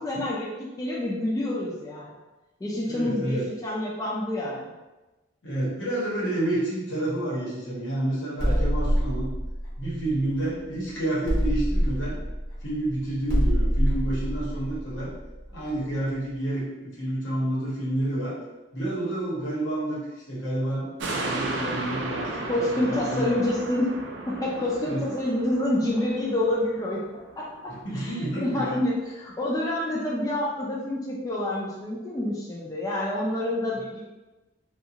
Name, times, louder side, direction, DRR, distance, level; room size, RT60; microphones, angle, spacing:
voice 1, 0.0-2.2 2.6-4.7 8.5-8.7 22.4-23.9 24.3-27.0 27.4-34.1, left 1 dB, 20° left, -5 dB, 0.4 m, -28 dB
voice 2, 2.9-3.5 5.4-9.3 9.8-12.2 12.6-15.1 15.5-18.4 18.7-20.0 20.3-23.4 24.8-25.0 27.8-28.8, right 1 dB, 85° left, -7 dB, 1.1 m, -29 dB
sound 1, 8.4-10.7 11.3-15.9, equal, 70° left, 1.1 m, -26 dB
sound 2, 21.0-27.7 28.1-28.2, right 2 dB, 70° right, 0.4 m, -34 dB
2.5 x 2.4 x 2.8 m, 1.1 s
head